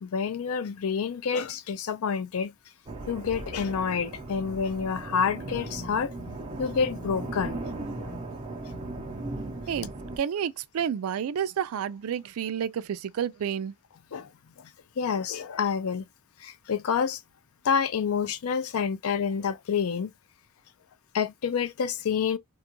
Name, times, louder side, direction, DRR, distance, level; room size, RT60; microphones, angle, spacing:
voice 1, 0.0-2.5 3.1-6.1 6.6-7.6 8.0-8.1 14.1-14.3 14.6-14.7 15.0-16.0 16.4-17.2 17.6-20.1 21.1-22.4, left 6 dB, 70° left, 0.4 m, -28 dB
sound 1, 2.9-10.2, right 2 dB, 25° right, 0.7 m, -37 dB
voice 2, 9.7-13.7, right 8 dB, 70° right, 0.3 m, -30 dB
2.5 x 2.3 x 2.9 m
head